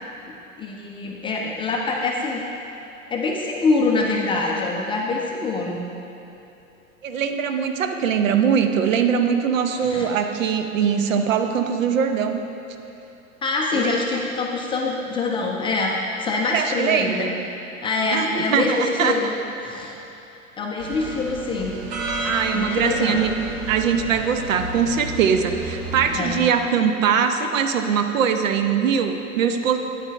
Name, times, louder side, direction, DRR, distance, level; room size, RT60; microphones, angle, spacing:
voice 1, 0.6-2.4 3.1-5.8 9.8-10.1 13.4-15.9 16.2-17.4 17.8-19.3 19.6-19.9 20.6-21.8 22.5-23.2 26.1-26.4, left 3 dB, 15° left, -1 dB, 0.4 m, -24 dB
voice 2, 7.0-12.4 13.7-14.0 16.5-17.3 18.1-19.2 22.2-23.4 23.7-29.8, right 7 dB, 65° right, 7 dB, 0.7 m, -21 dB
sound 1, 20.8-26.4, right 2 dB, 45° right, 1.4 m, -31 dB
9.2 x 8.2 x 3.4 m, 2.9 s
figure-of-eight pair, 90°, 42 cm